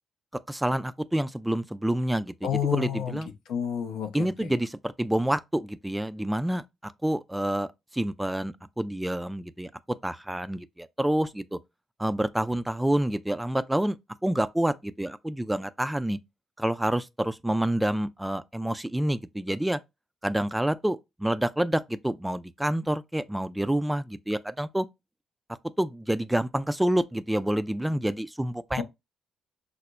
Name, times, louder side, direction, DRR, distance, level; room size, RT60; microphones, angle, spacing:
voice 1, 0.5-3.3 4.1-11.6 12.0-16.2 16.6-19.8 20.2-24.9 25.8-28.8, right 1 dB, 10° right, 0.3 m, -28 dB
voice 2, 2.4-3.2 3.5-4.5 28.8-28.9, left 9 dB, 70° left, 0.5 m, -30 dB
5.5 x 2.0 x 2.2 m
hypercardioid pair, 45°, 0 cm